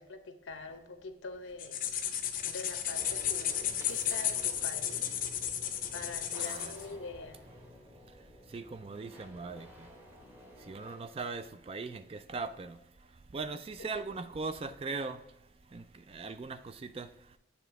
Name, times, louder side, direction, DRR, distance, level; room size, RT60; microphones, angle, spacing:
voice 1, 0.0-1.9 2.4-5.2 5.9-7.4 13.8-13.9, left 3 dB, 90° left, 0.8 m, -45 dB
sound 1, 1.6-6.9, left 10 dB, 45° left, 0.5 m, -33 dB
sound 2, 2.9-11.0, left 1 dB, 10° right, 0.9 m, -52 dB
voice 2, 6.4-6.7 8.5-9.7 10.7-12.8 13.3-15.2 15.7-17.1, right 4 dB, 30° right, 0.3 m, -39 dB
7.3 x 3.3 x 4.6 m
head